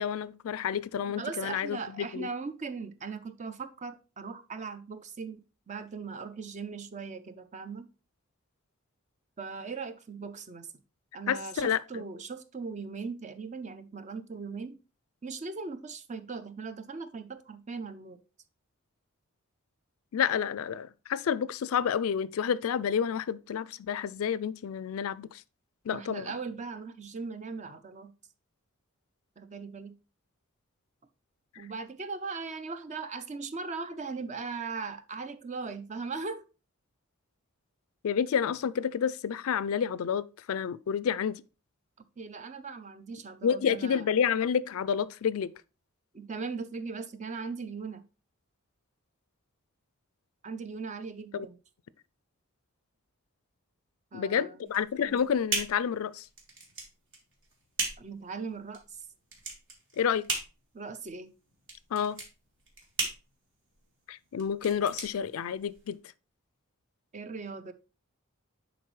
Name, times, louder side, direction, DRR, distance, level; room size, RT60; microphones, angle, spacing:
voice 1, 0.0-2.3 11.3-12.0 20.1-25.4 25.9-26.3 38.0-41.4 43.4-45.5 51.3-51.5 54.1-56.3 60.0-60.3 61.9-62.2 64.1-66.0, left 7 dB, 75° left, 0.4 m, -29 dB
voice 2, 1.2-7.9 9.4-10.7 11.1-14.8 15.2-18.2 25.9-28.1 29.4-29.9 31.6-36.5 42.0-44.1 46.1-48.0 50.4-51.6 54.1-54.6 55.1-55.2 58.0-59.0 60.7-61.3 67.1-67.7, right 4 dB, 35° right, 0.5 m, -39 dB
sound 1, 54.7-66.0, right 3 dB, 60° right, 2.0 m, -38 dB
10.0 x 4.0 x 3.2 m
head